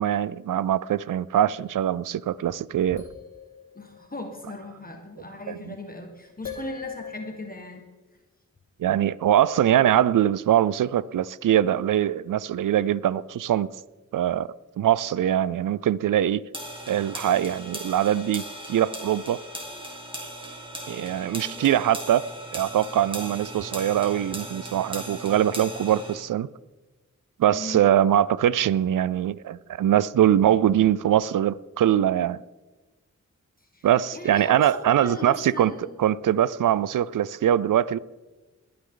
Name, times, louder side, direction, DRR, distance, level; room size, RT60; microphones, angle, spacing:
voice 1, 0.0-3.0 5.5-5.7 8.8-13.7 14.1-14.5 14.8-16.4 16.9-19.4 20.9-26.5 27.4-32.4 33.8-35.7 36.0-38.0, right 11 dB, 85° right, 0.5 m, -22 dB
sound 1, 3.0-4.4 6.4-7.5, left 6 dB, 60° left, 2.2 m, -39 dB
voice 2, 3.7-7.8 21.4-21.8 27.5-27.8 33.6-33.9 34.1-36.0, left 1 dB, 30° left, 1.6 m, -38 dB
sound 2, 16.5-26.2, right 1 dB, 15° right, 2.7 m, -38 dB
20.5 x 9.5 x 3.9 m
wide cardioid pair, 70°, 31 cm